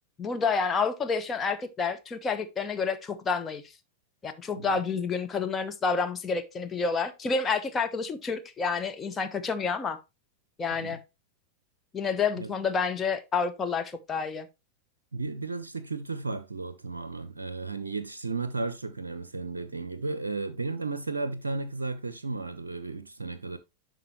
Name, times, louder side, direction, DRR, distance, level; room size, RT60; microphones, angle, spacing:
voice 1, 0.2-3.6 4.2-10.0 10.6-11.0 11.9-14.5, left 5 dB, 20° left, 0.8 m, -29 dB
voice 2, 15.1-23.6, right 3 dB, 75° right, 0.5 m, -34 dB
11.0 x 4.0 x 3.1 m
figure-of-eight pair, 90°, 0 cm